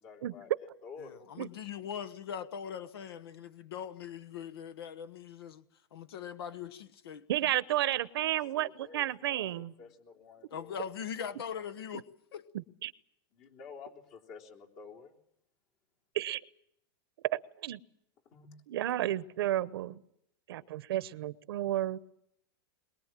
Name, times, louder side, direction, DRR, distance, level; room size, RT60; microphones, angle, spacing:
voice 1, 0.0-1.4 8.5-9.5 9.8-10.8 11.2-11.8 13.3-15.2 18.3-18.5, left 5 dB, 50° left, 3.5 m, -51 dB
voice 2, 1.0-5.6 5.9-7.3 10.5-12.0 12.3-12.4, left 8 dB, 85° left, 1.2 m, -41 dB
voice 3, 7.3-9.7 12.5-12.9 16.1-16.4 17.6-17.8 18.7-20.0 20.5-22.0, right 13 dB, 80° right, 0.9 m, -32 dB
22.5 x 21.5 x 7.5 m
supercardioid pair, 140°, 12 cm